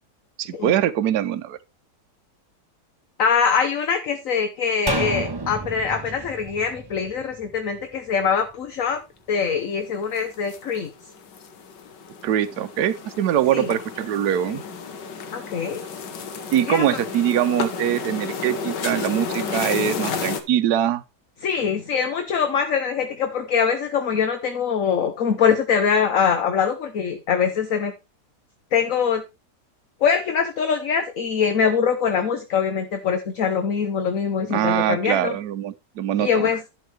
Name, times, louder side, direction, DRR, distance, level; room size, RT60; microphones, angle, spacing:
voice 1, 0.4-1.6 12.2-14.6 16.5-21.0 34.5-36.5, right 11 dB, 70° right, 1.2 m, -23 dB
voice 2, 3.2-9.0 9.3-10.9 13.5-13.7 15.3-15.9 16.6-17.0 21.4-27.9 28.7-29.2 30.0-35.4 36.2-36.6, left 6 dB, 55° left, 1.3 m, -23 dB
sound 1, 4.9-8.2 8.5-8.6, right 3 dB, 25° right, 0.6 m, -31 dB
sound 2, 10.0-20.4, left 5 dB, 85° left, 1.8 m, -32 dB
11.5 x 7.4 x 3.4 m
omnidirectional pair, 1.8 m